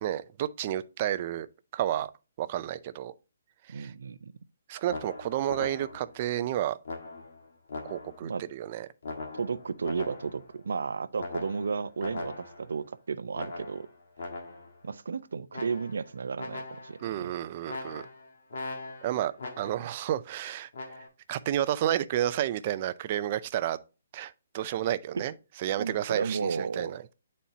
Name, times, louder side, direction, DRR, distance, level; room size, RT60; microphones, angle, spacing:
voice 1, 0.0-1.5 1.7-2.1 2.4-3.1 3.7-3.9 4.7-6.8 7.8-8.9 17.0-18.0 19.0-19.3 19.6-20.7 21.3-23.8 24.1-25.3 25.6-27.0, right 12 dB, 35° right, 0.4 m, -31 dB
voice 2, 3.7-4.3 8.2-8.4 9.3-13.9 14.8-17.3 25.2-25.3 25.8-27.0, right 5 dB, 80° right, 0.5 m, -33 dB
sound 1, 4.9-6.2 6.8-8.3 9.0-10.5 11.2-12.8 13.3-14.8 15.5-16.1 16.4-17.1 17.7-20.0 20.7-21.1, left 3 dB, 65° left, 1.5 m, -40 dB
9.0 x 4.2 x 2.7 m
hypercardioid pair, 165°, 0 cm